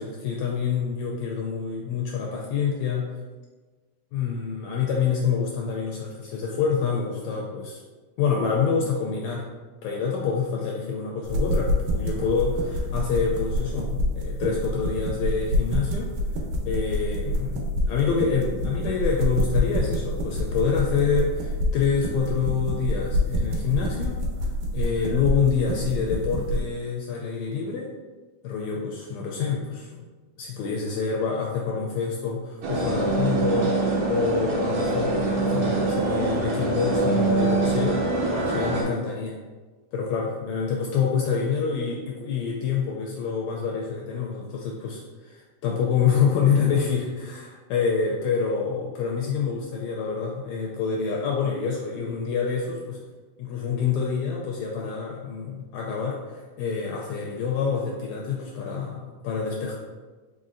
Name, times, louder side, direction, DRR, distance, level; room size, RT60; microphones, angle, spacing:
voice 1, 0.0-3.2 4.1-7.8 8.2-9.5 9.8-16.1 16.7-24.5 24.7-27.9 28.4-30.0 30.4-38.0 38.3-39.4 39.9-53.0 53.4-59.8, left 6 dB, 80° left, -1 dB, 1.7 m, -27 dB
sound 1, 11.2-26.6, equal, 90° right, 2.2 m, -27 dB
sound 2, 32.6-38.8, right 2 dB, 70° right, 1.9 m, -24 dB
5.0 x 4.1 x 2.5 m, 1.3 s
omnidirectional pair, 3.6 m